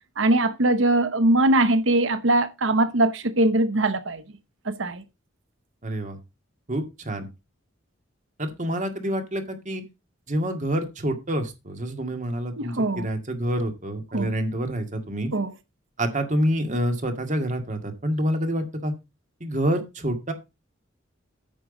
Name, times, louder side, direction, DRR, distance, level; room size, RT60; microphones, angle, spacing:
voice 1, 0.2-4.2 4.7-5.0 12.6-13.1 14.1-14.3 15.3-15.5, right 2 dB, 70° right, 0.9 m, -21 dB
voice 2, 5.8-6.2 6.7-7.3 8.4-9.8 10.3-15.3 16.0-18.9 19.4-20.3, right 1 dB, 40° right, 2.0 m, -27 dB
9.3 x 6.2 x 4.9 m
head